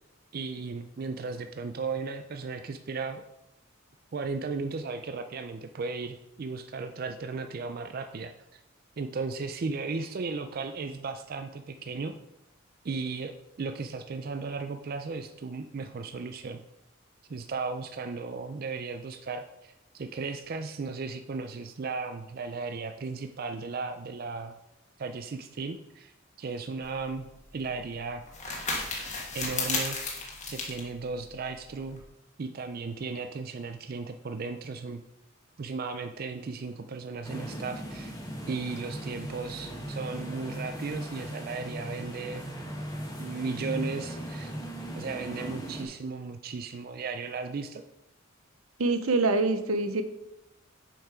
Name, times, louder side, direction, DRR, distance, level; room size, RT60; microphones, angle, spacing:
voice 1, 0.3-3.2 4.1-8.6 9.0-12.1 12.8-13.3 13.6-16.6 17.3-24.5 25.0-26.1 26.4-27.3 27.5-28.2 29.3-30.0 30.5-32.0 32.4-35.0 35.6-38.1 38.5-42.5 43.2-44.5 44.9-47.8, right 4 dB, 45° right, 8 dB, 0.4 m, -35 dB
sound 1, 26.8-32.0, left 3 dB, 35° left, 1.5 m, -35 dB
sound 2, 37.2-45.8, equal, 15° left, 1.4 m, -38 dB
voice 2, 48.8-50.0, right 3 dB, 85° right, 9 dB, 0.7 m, -25 dB
7.2 x 5.6 x 4.7 m, 0.88 s
head